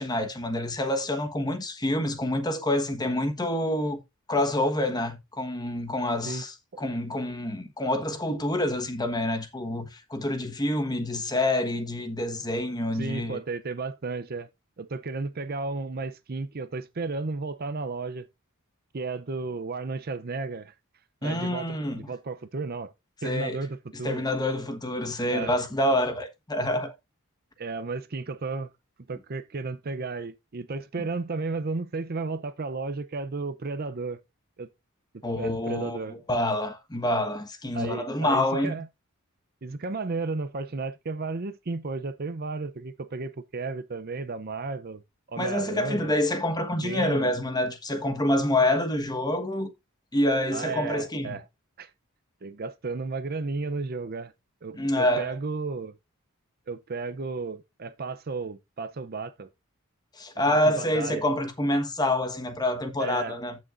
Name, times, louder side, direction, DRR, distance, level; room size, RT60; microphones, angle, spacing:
voice 1, 0.0-4.0 4.3-13.4 21.2-22.1 23.2-23.6 24.0-26.9 35.2-38.7 45.4-49.7 50.1-51.4 54.8-55.3 60.2-63.6, left 1 dB, 20° left, 1.2 m, -27 dB
voice 2, 12.9-14.5 14.8-18.3 18.9-20.7 21.2-21.8 22.1-22.9 23.2-24.2 25.3-25.5 27.6-28.7 29.1-34.2 34.6-34.7 35.4-36.1 37.7-38.9 39.6-45.0 45.3-46.1 46.7-47.3 50.5-51.4 51.8-51.9 52.4-54.3 54.6-56.0 56.7-59.5 60.5-61.2 63.0-63.4, right 3 dB, 45° right, 0.6 m, -33 dB
14.5 x 6.2 x 2.5 m
head